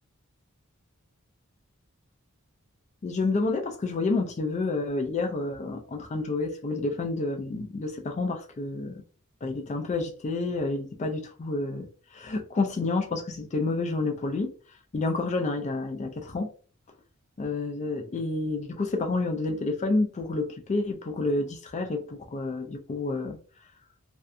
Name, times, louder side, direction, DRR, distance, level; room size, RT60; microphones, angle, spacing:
voice 1, 3.0-9.0 9.4-14.5 14.9-16.5 17.4-23.4, left 3 dB, 30° left, 0.4 m, -29 dB
2.6 x 2.2 x 2.5 m
head